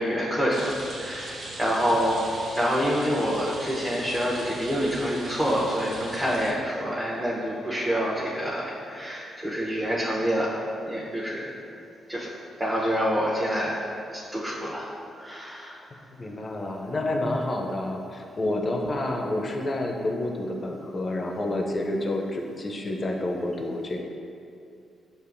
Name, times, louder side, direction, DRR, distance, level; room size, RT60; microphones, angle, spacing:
voice 1, 0.0-11.6 12.1-13.8 14.1-14.9 15.2-15.8, equal, 15° right, -7 dB, 0.9 m, -27 dB
Rain, 0.5-6.5, right 2 dB, 70° right, 0.5 m, -40 dB
voice 2, 16.1-24.0, left 1 dB, 40° left, 1 dB, 0.6 m, -29 dB
6.6 x 2.5 x 2.5 m, 2.5 s
supercardioid pair, 50°, 0 cm